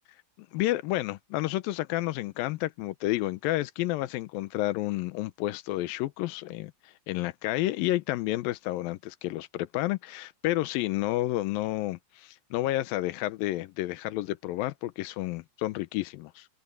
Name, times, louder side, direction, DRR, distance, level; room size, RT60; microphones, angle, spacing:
voice 1, 0.5-16.5, left 16 dB, 85° left, 2.0 m, -30 dB
open air
omnidirectional pair, 5.0 m